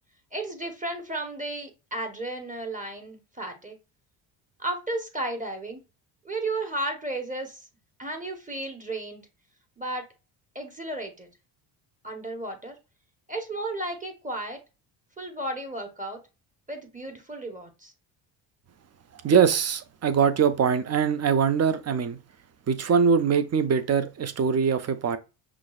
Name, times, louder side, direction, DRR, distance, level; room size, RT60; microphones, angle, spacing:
voice 1, 0.3-3.8 4.6-5.8 6.2-7.7 8.0-9.2 9.8-10.1 10.5-11.3 12.0-12.8 13.3-14.6 15.2-16.2 16.7-17.9, right 2 dB, 15° right, 0.9 m, -33 dB
voice 2, 19.2-22.2 22.7-25.2, right 6 dB, 35° right, 0.6 m, -22 dB
5.9 x 2.3 x 2.4 m
supercardioid pair, 75°, 48 cm